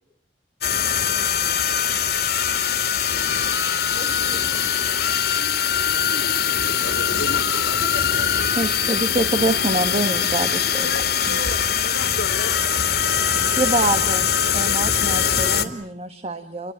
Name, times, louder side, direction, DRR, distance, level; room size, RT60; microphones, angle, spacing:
sound 1, 0.6-15.6, left 8 dB, 60° left, 2.5 m, -22 dB
voice 1, 3.9-5.3 7.7-8.7, right 1 dB, 55° right, 8 dB, 4.6 m, -41 dB
voice 2, 5.8-7.8 10.8-12.5, left 2 dB, 80° left, 8 dB, 2.9 m, -33 dB
voice 3, 8.5-10.9 11.3-11.4 13.6-16.7, right 2 dB, 35° right, 8 dB, 1.6 m, -25 dB
30.0 x 22.0 x 9.0 m, 0.65 s
head